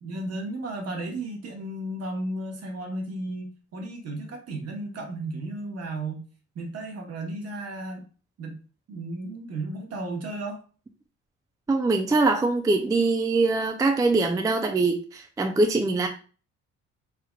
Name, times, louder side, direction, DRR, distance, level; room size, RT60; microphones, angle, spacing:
voice 1, 0.0-6.2 6.5-8.0 8.4-8.6 8.9-10.6, right 2 dB, 55° right, 1.0 m, -34 dB
voice 2, 11.7-16.1, right 3 dB, 10° right, 0.3 m, -23 dB
3.5 x 3.3 x 2.2 m
cardioid pair, 90°, 30 cm